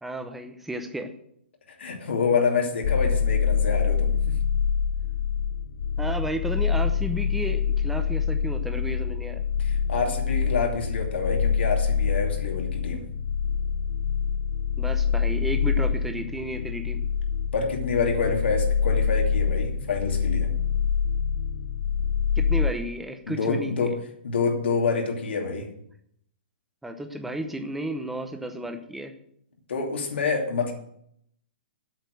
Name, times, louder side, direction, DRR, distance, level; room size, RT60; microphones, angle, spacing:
voice 1, 0.0-1.1 6.0-9.4 14.8-17.0 22.4-23.9 26.8-29.1, right 1 dB, 5° right, 6 dB, 0.8 m, -33 dB
voice 2, 1.8-4.4 9.6-13.1 17.5-20.5 23.3-23.9 24.2-25.7 29.7-30.7, left 4 dB, 80° left, 1 dB, 2.7 m, -27 dB
sound 1, 2.8-22.7, left 7 dB, 45° left, 0.5 m, -25 dB
8.2 x 6.5 x 7.8 m, 0.72 s
hypercardioid pair, 165°, 6 cm